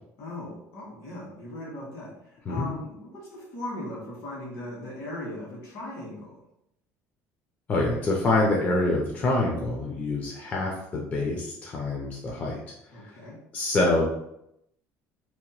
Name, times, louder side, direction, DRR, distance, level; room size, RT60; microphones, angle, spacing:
voice 1, 0.2-6.4 12.9-13.4, left 1 dB, 70° left, -4 dB, 1.4 m, -38 dB
voice 2, 7.7-12.6 12.9-13.1 13.5-14.0, left 2 dB, 25° left, -2 dB, 0.4 m, -26 dB
2.8 x 2.1 x 2.9 m, 0.79 s
cardioid pair, 145°, 6 cm